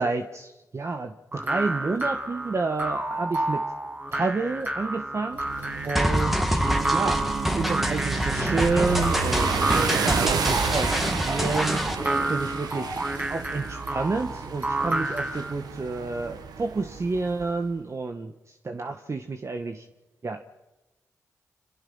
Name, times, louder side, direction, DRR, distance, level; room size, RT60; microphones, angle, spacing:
voice 1, 0.0-3.7 4.1-5.4 5.8-7.2 7.5-11.8 12.3-13.0 13.3-19.9 20.2-20.4, right 3 dB, 45° right, 6 dB, 1.8 m, -29 dB
sound 1, 1.3-15.5, right 2 dB, 30° right, 6.3 m, -30 dB
sound 2, 5.3-17.5, right 6 dB, 80° right, 1.6 m, -31 dB
sound 3, 6.0-12.0, equal, ahead, 2.4 m, -27 dB
28.0 x 27.0 x 5.8 m, 1.0 s
supercardioid pair, 50°, 7 cm